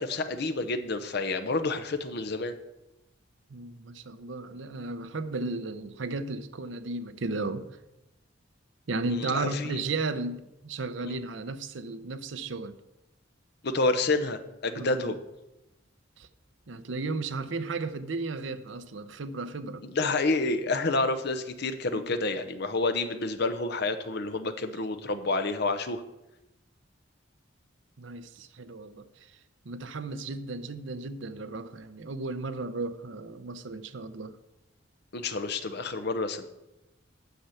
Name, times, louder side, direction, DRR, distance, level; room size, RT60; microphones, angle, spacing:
voice 1, 0.0-2.5 9.1-9.8 11.0-11.2 13.6-15.2 19.9-26.0 35.1-36.4, left 3 dB, 60° left, 9 dB, 0.8 m, -29 dB
voice 2, 3.5-7.7 8.9-12.8 14.7-15.2 16.2-16.3 16.7-19.9 21.9-22.0 28.0-29.4 29.6-34.4, right 3 dB, 70° right, 11 dB, 0.7 m, -34 dB
9.3 x 6.8 x 5.7 m, 0.95 s
head